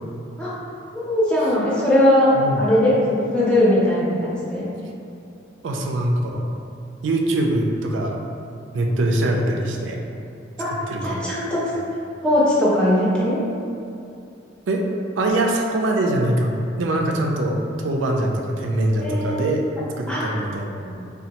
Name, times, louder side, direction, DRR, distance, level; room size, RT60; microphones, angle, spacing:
voice 1, 0.9-2.3 2.6-4.7 10.6-10.7 11.0-11.6 12.2-13.4 19.0-19.7 20.1-20.4, left 1 dB, 5° left, -8 dB, 0.6 m, -19 dB
voice 2, 5.6-6.4 7.0-8.2 8.7-10.0 10.9-11.2 14.7-14.8 15.2-19.6 20.0-21.0, right 1 dB, 90° right, 1 dB, 0.4 m, -23 dB
4.2 x 2.3 x 2.8 m, 2.6 s
head